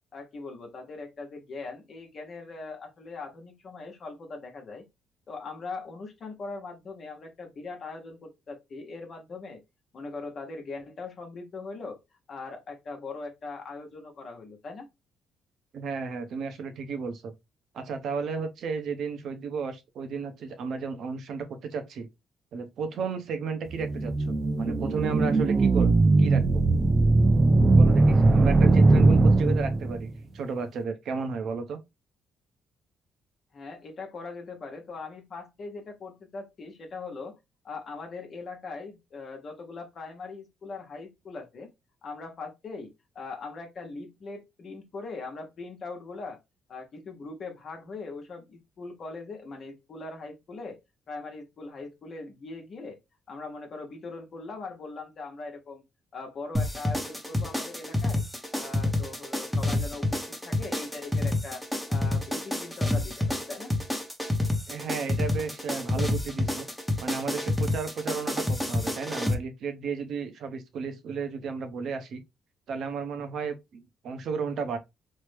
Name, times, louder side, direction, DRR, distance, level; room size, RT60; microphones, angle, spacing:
voice 1, 0.1-4.8 5.3-9.6 9.9-12.0 12.3-14.9 28.6-29.2 33.5-37.3 37.6-41.7 42.0-46.4 46.7-50.8 51.1-53.0 53.3-55.8 56.1-58.2 58.5-60.2 60.4-61.6 61.9-63.7, left 3 dB, 50° left, 0.8 m, -40 dB
voice 2, 15.7-17.3 17.7-22.1 22.5-26.6 27.7-31.8 64.7-66.7 67.0-72.2 72.7-74.8, right 5 dB, 70° right, 0.7 m, -33 dB
sound 1, 23.7-30.0, right 3 dB, 35° right, 0.4 m, -20 dB
sound 2, 56.5-69.3, left 2 dB, ahead, 0.8 m, -28 dB
3.1 x 2.0 x 3.3 m
cardioid pair, 90°, 0 cm